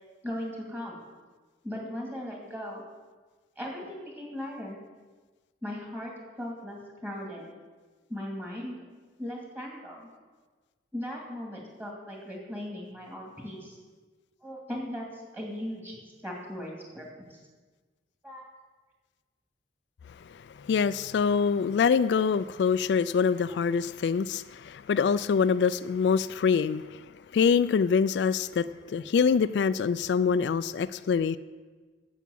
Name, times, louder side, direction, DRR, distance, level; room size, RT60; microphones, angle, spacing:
voice 1, 0.2-1.0 1.6-2.9 3.6-4.8 5.6-6.1 6.4-7.5 8.1-8.8 9.2-10.1 10.9-13.8 14.4-16.0 16.2-17.4 18.2-18.5, left 1 dB, 10° right, -1 dB, 2.4 m, -38 dB
voice 2, 20.3-27.0 27.3-31.4, left 6 dB, 70° left, 14 dB, 0.3 m, -25 dB
8.3 x 7.2 x 8.5 m, 1.4 s
head